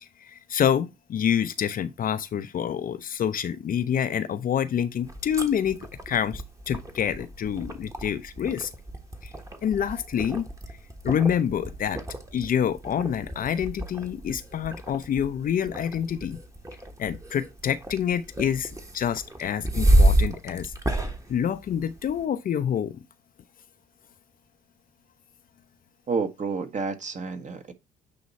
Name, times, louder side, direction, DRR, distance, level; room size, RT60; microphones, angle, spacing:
voice 1, 0.0-5.8 6.1-8.7 9.2-9.3 9.6-10.5 11.0-12.0 12.3-16.4 17.0-20.7 21.3-23.0, left 8 dB, 45° left, 0.6 m, -27 dB
sound 1, 5.0-22.2, right 1 dB, 15° right, 1.3 m, -29 dB
voice 2, 26.1-27.7, right 4 dB, 35° right, 1.4 m, -30 dB
8.5 x 3.1 x 4.1 m
hypercardioid pair, 55°, 21 cm